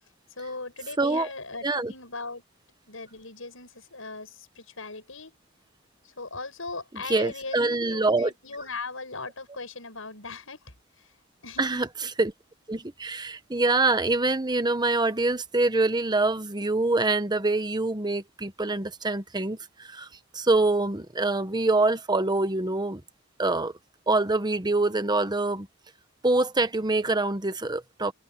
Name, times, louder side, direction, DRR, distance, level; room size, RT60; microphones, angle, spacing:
voice 1, 0.4-2.4 2.9-5.4 6.0-11.1 11.4-11.8, left 3 dB, 75° left, 8.0 m, -39 dB
voice 2, 1.0-1.3 1.6-1.9 7.1-8.3 11.6-11.9 12.2-12.3 12.7-20.1 20.3-23.0 23.4-23.7 24.1-25.7 26.2-28.1, right 2 dB, 20° right, 1.1 m, -25 dB
head